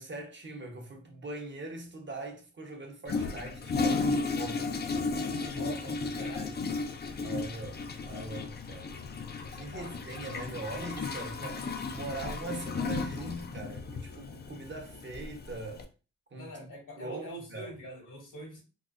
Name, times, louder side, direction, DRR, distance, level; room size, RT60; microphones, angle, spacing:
voice 1, 0.0-4.7 7.1-8.9 9.5-15.9 16.3-17.8, right 2 dB, 35° right, 0.7 m, -42 dB
Toilet flush, 3.1-15.8, left 4 dB, 30° left, 0.4 m, -34 dB
voice 2, 5.4-6.6 9.7-9.9 16.4-18.6, left 1 dB, 75° left, 1.9 m, -44 dB
3.7 x 2.7 x 2.4 m
wide cardioid pair, 130°, 32 cm